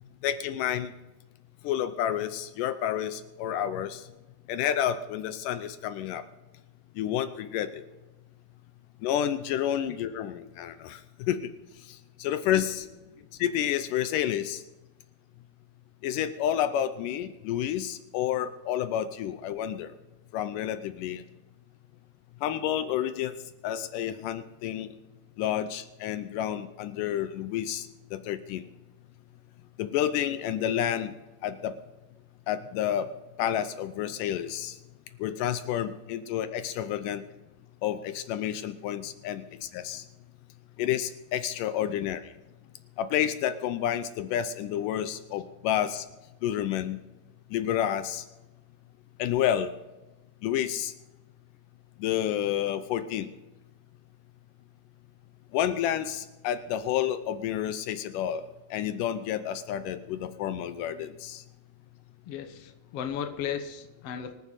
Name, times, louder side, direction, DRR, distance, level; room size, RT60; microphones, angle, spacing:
voice 1, 0.2-0.9 1.6-4.0 4.5-6.2 7.0-7.8 9.0-11.5 11.9-12.9 13.4-14.6 16.0-19.9 20.3-21.2 22.4-23.3 23.6-24.9 25.4-28.6 29.8-31.1 31.4-31.8 32.5-33.1 33.4-34.8 35.2-37.2 37.8-40.1 40.8-42.3 43.0-46.1 46.4-47.0 47.5-48.2 49.2-49.7 50.4-50.9 52.0-53.3 55.5-58.4 58.7-61.4, left 10 dB, 80° left, 12 dB, 2.2 m, -30 dB
voice 2, 62.3-64.3, left 8 dB, 60° left, 7 dB, 1.9 m, -35 dB
25.0 x 9.6 x 4.1 m, 1.1 s
omnidirectional pair, 3.8 m